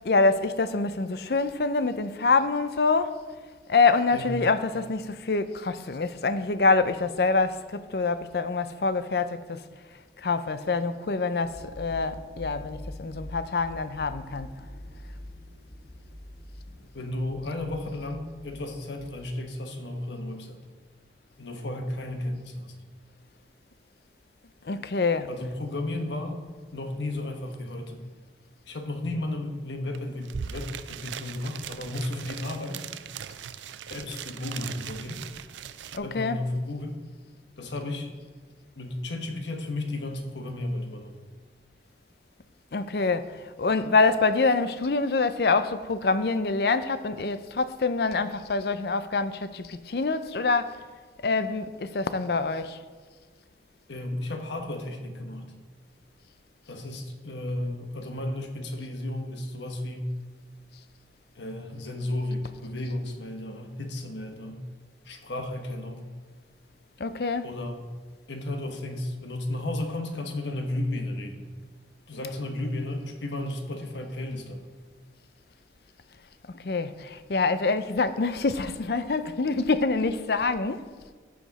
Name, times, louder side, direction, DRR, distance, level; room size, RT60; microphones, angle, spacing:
voice 1, 0.0-3.1 3.7-9.6 10.2-14.5 24.6-25.3 35.9-36.4 42.7-50.7 51.2-52.8 67.0-67.5 76.5-80.8, left 3 dB, 60° left, 0.5 m, -26 dB
sound 1, 11.4-19.3, left 1 dB, 25° left, 1.2 m, -44 dB
voice 2, 16.9-20.7 21.4-22.7 25.3-26.4 26.7-28.1 28.6-32.8 33.9-35.2 36.0-37.0 37.6-38.2 38.8-41.2 53.9-55.6 56.7-60.1 61.3-64.6 65.0-66.1 67.4-67.9 68.3-71.4 72.1-74.6, left 1 dB, 80° left, 1.3 m, -33 dB
sound 2, 29.9-30.0 30.2-36.0, right 8 dB, 85° right, 0.4 m, -39 dB
14.5 x 5.1 x 4.1 m
head